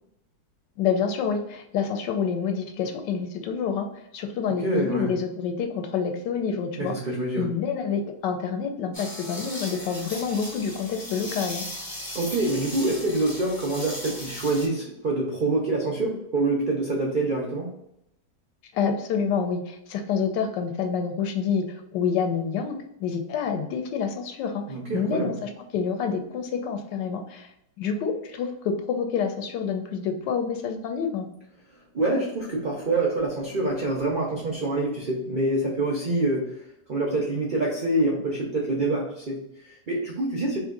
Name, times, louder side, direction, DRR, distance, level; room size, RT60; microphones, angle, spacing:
voice 1, 0.8-3.9 4.1-6.9 7.4-11.6 18.7-27.5 27.8-31.3, left 6 dB, 80° left, 5 dB, 1.2 m, -28 dB
voice 2, 4.5-5.1 6.8-7.5 12.1-17.8 24.7-25.4 31.9-40.6, right 2 dB, 80° right, -2 dB, 0.4 m, -26 dB
sound 1, 8.9-14.7, left 1 dB, 30° left, 0.4 m, -37 dB
3.1 x 2.6 x 3.7 m, 0.77 s
omnidirectional pair, 1.9 m